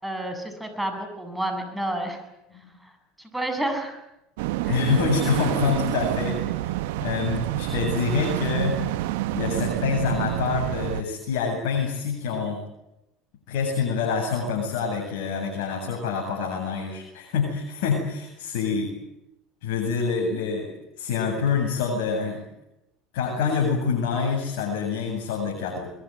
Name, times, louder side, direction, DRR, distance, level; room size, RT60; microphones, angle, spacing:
voice 1, 0.0-2.2 2.8-2.9 3.2-4.0 4.6-4.8, right 1 dB, 5° right, 6 dB, 7.8 m, -30 dB
sound 1, 4.4-11.0, right 15 dB, 75° right, 1.0 m, -28 dB
voice 2, 4.7-6.7 7.0-8.8 9.3-12.6 13.5-18.9 19.6-20.7 21.0-22.4 23.1-25.9, left 5 dB, 75° left, 1 dB, 8.0 m, -26 dB
24.0 x 22.0 x 9.4 m, 0.88 s
hypercardioid pair, 90°, 0 cm